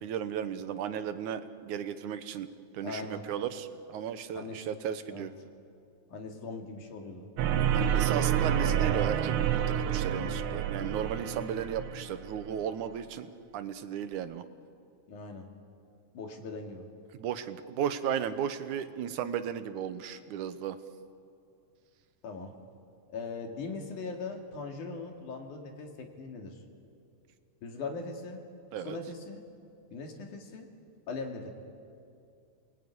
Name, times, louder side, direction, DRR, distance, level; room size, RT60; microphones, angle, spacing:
voice 1, 0.0-2.5 2.7-5.3 7.7-14.4 17.1-20.8 28.7-29.0, right 9 dB, 85° right, 10 dB, 2.5 m, -35 dB
voice 2, 2.8-3.2 4.3-4.7 5.1-5.3 6.1-7.3 11.2-11.5 15.1-15.5 16.1-16.9 22.2-22.6 23.1-26.6 27.6-28.4 28.8-29.4 29.9-30.7 31.1-31.5, left 4 dB, 85° left, 3 dB, 3.9 m, -40 dB
sound 1, 7.4-12.7, right 9 dB, 65° right, 1.4 m, -28 dB
29.0 x 20.0 x 9.6 m, 2.4 s
omnidirectional pair, 3.4 m